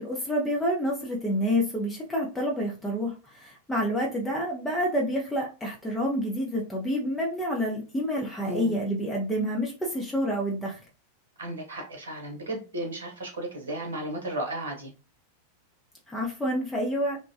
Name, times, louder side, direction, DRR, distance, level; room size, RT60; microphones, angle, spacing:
voice 1, 0.0-10.8 16.1-17.2, equal, 10° left, -1 dB, 0.6 m, -28 dB
voice 2, 8.4-8.8 11.4-14.9, right 1 dB, 65° right, 2 dB, 1.0 m, -34 dB
3.0 x 2.2 x 2.7 m, 0.33 s
figure-of-eight pair, 90°, 0 cm